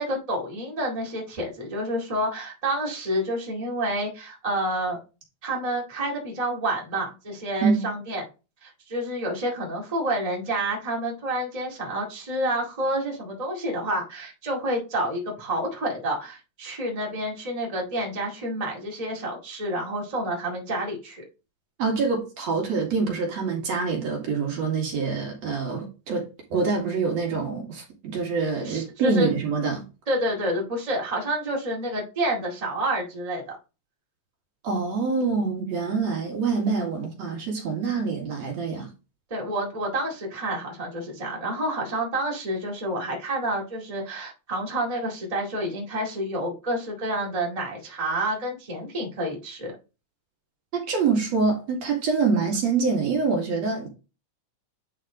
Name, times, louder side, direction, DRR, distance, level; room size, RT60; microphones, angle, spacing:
voice 1, 0.0-5.0 5.4-8.2 8.6-21.2 28.6-29.3 30.1-33.6 39.3-49.7, right 1 dB, 15° right, 1.8 m, -29 dB
voice 2, 21.8-26.3 26.5-29.8 34.6-38.9 50.7-53.9, right 4 dB, 60° right, 3.1 m, -25 dB
9.8 x 4.2 x 3.8 m
omnidirectional pair, 3.4 m